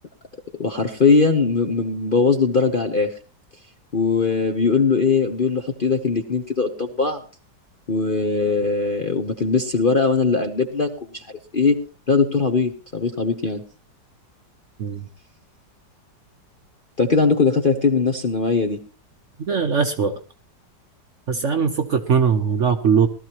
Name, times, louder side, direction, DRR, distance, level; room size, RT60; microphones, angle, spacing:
voice 1, 0.6-3.1 3.9-7.2 7.9-11.2 11.5-11.8 12.1-13.6 17.0-18.8, left 4 dB, 40° left, 5 dB, 0.8 m, -20 dB
voice 2, 19.4-20.1 21.3-23.1, right 6 dB, 50° right, 7 dB, 1.0 m, -20 dB
18.5 x 13.0 x 3.0 m, 0.34 s
omnidirectional pair, 2.0 m